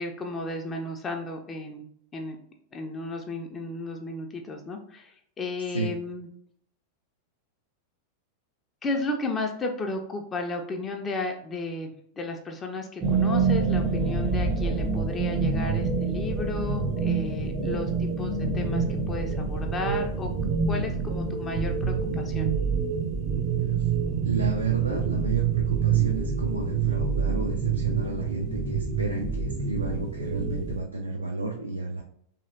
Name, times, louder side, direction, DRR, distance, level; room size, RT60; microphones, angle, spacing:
voice 1, 0.0-2.4 2.7-6.3 8.8-20.3 20.7-22.5, left 2 dB, 20° left, 2 dB, 0.4 m, -34 dB
sound 1, 13.0-30.8, right 5 dB, 30° right, 0.5 m, -26 dB
voice 2, 24.2-32.0, right 2 dB, 80° right, 1 dB, 0.3 m, -32 dB
2.9 x 2.8 x 2.6 m, 0.67 s
figure-of-eight pair, 90°, 0 cm